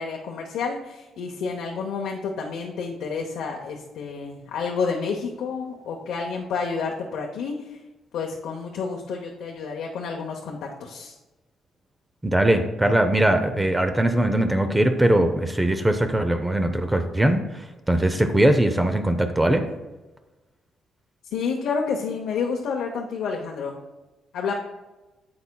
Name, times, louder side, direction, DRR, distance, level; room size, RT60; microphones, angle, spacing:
voice 1, 0.0-7.5 8.1-11.1 21.3-23.8 24.3-24.5, left 5 dB, 80° left, 0 dB, 0.8 m, -29 dB
voice 2, 12.2-19.6, right 1 dB, 15° right, 7 dB, 0.6 m, -21 dB
9.6 x 7.0 x 2.3 m, 1.1 s
cardioid pair, 90°, 0 cm